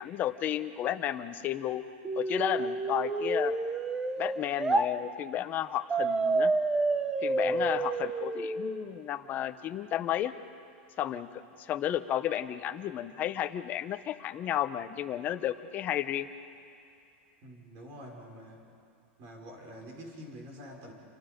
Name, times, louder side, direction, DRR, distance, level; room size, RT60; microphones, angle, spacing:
voice 1, 0.0-1.8 2.2-3.6 4.2-6.5 7.2-10.3 11.0-11.3 11.6-16.3, left 11 dB, 25° left, 9 dB, 0.8 m, -32 dB
sound 1, 2.0-4.9 5.9-8.9, right 3 dB, 10° right, 0.7 m, -29 dB
voice 2, 7.2-7.7 17.4-18.6 19.2-20.9, equal, 40° right, 1 dB, 5.3 m, -47 dB
28.5 x 25.0 x 5.3 m, 2.4 s
supercardioid pair, 160°, 7 cm